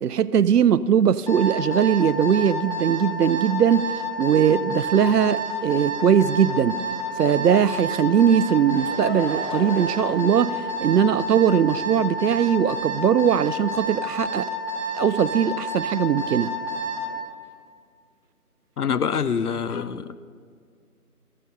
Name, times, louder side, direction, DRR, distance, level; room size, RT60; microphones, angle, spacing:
voice 1, 0.0-3.9 4.2-6.8 7.2-14.5 14.9-16.5, right 8 dB, 90° right, 0.5 m, -20 dB
Alarm, 1.3-17.1, right 2 dB, 20° left, 2.3 m, -29 dB
Laughter / Crowd, 8.3-13.0, equal, 45° left, 2.1 m, -38 dB
voice 2, 18.8-20.2, left 6 dB, 80° left, 0.6 m, -25 dB
14.0 x 6.6 x 5.5 m
figure-of-eight pair, 175°, 46 cm